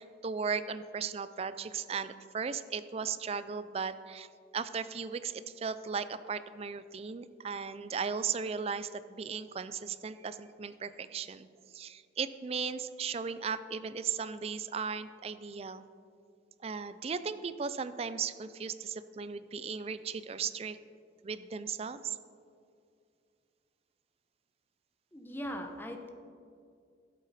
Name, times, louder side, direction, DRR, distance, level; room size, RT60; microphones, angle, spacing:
voice 1, 0.0-4.3 4.5-11.5 11.7-15.8 16.6-20.8 21.2-22.2, right 6 dB, 35° right, 13 dB, 0.4 m, -36 dB
voice 2, 25.1-26.1, equal, 10° left, 4 dB, 0.8 m, -40 dB
12.0 x 8.2 x 4.1 m, 2.3 s
head